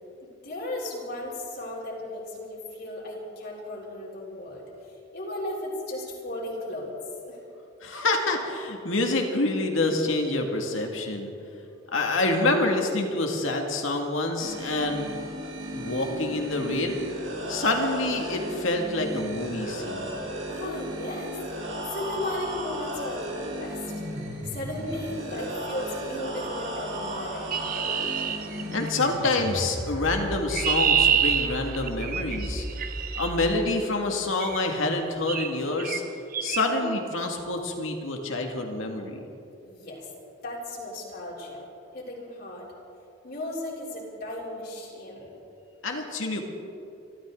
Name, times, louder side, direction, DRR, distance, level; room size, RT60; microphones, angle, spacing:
voice 1, 0.2-6.9 7.3-7.4 20.5-21.4 21.9-23.8 24.4-27.5 36.6-36.9 39.6-40.1 40.4-41.7 41.9-42.7 43.2-45.3, left 1 dB, 50° left, -4 dB, 3.4 m, -35 dB
voice 2, 7.8-11.3 11.9-15.1 15.7-17.0 17.5-20.2 28.7-32.7 33.2-36.0 36.4-39.2 45.8-46.4, left 2 dB, 80° left, 2 dB, 2.1 m, -27 dB
sound 1, 14.4-33.4, equal, 70° right, 4.2 m, -35 dB
Chirp tweet, 27.5-29.1 30.2-33.3 34.4-34.7 35.3-35.5 35.8-36.0 36.3-36.6, right 8 dB, 45° right, 0.8 m, -27 dB
26.0 x 13.0 x 3.8 m, 2.8 s
head